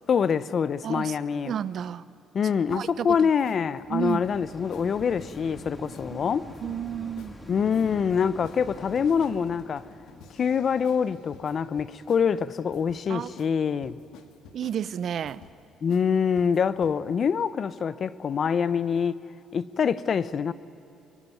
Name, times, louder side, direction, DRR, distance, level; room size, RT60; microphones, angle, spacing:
voice 1, 0.1-1.5 2.3-6.5 7.5-9.9 10.4-14.0 15.8-19.2 19.5-20.5, left 6 dB, 45° left, 0.9 m, -25 dB
voice 2, 0.8-1.2 1.5-2.0 2.4-3.3 3.9-4.2 6.1-6.2 6.6-7.4 13.1-13.3 14.5-15.4, right 9 dB, 55° right, 0.8 m, -31 dB
sound 1, 2.7-3.6 4.1-4.4 4.7-4.9 5.2-6.1 6.5-6.9 7.2-7.4 7.7-12.3 12.7-13.0 13.4-13.5 13.8-14.8 15.2-15.6 15.9-16.1 16.4-16.9, left 8 dB, 80° left, 1.9 m, -51 dB
sound 2, 2.7-14.0 14.6-14.7, left 1 dB, 15° left, 2.4 m, -46 dB
24.5 x 23.5 x 9.5 m
cardioid pair, 95°, 0 cm